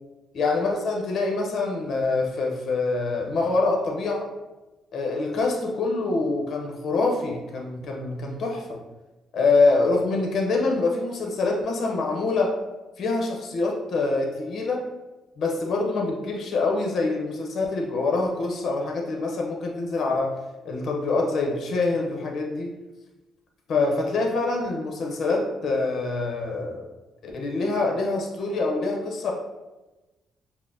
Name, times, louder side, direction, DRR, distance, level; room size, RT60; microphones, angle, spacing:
voice 1, 0.3-4.3 4.9-8.8 9.3-12.5 13.0-14.8 15.4-20.3 20.6-22.7 23.7-26.9 27.2-29.3, left 3 dB, 65° left, 1 dB, 0.7 m, -25 dB
5.8 x 2.0 x 2.6 m, 1.1 s
cardioid pair, 90°, 0 cm